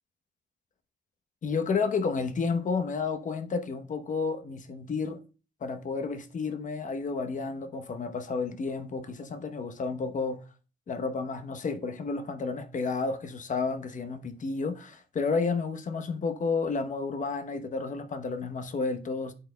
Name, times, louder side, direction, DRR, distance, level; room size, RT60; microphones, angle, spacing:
voice 1, 1.4-5.2 5.6-10.4 10.9-19.3, left 4 dB, 40° left, 0.9 m, -31 dB
11.0 x 4.3 x 2.2 m
cardioid pair, 90°, 20 cm